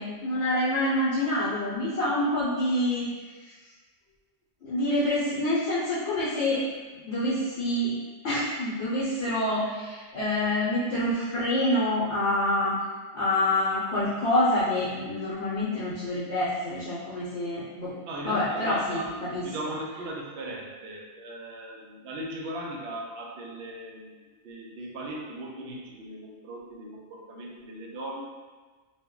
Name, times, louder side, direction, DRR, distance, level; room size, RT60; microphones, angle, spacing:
voice 1, 0.0-3.1 3.4-3.5 4.6-6.6 6.9-7.9 8.2-12.7 13.1-17.9 18.2-19.7, left 1 dB, 65° left, -9 dB, 0.9 m, -27 dB
voice 2, 18.1-19.1 19.4-28.3, right 1 dB, 65° right, -2 dB, 0.7 m, -38 dB
2.2 x 2.0 x 3.6 m, 1.3 s
omnidirectional pair, 1.2 m